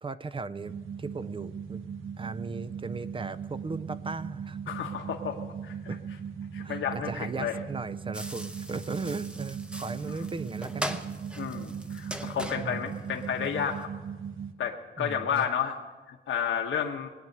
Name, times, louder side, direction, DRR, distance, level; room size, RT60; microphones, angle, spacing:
voice 1, 0.0-0.7 1.0-1.8 2.2-4.6 5.9-6.0 6.6-11.0 12.2-12.3 12.6-12.9 15.0-15.5, right 4 dB, 25° right, 14 dB, 0.5 m, -37 dB
sound 1, 0.6-14.5, right 7 dB, 75° right, 1.2 m, -39 dB
voice 2, 4.7-5.9 6.5-7.6 11.4-13.9 14.6-15.8 16.1-17.1, left 8 dB, 75° left, 2 dB, 1.1 m, -31 dB
sound 2, 8.1-13.9, equal, 5° right, 0.8 m, -40 dB
21.0 x 9.1 x 6.6 m, 1.3 s
wide cardioid pair, 140°, 21 cm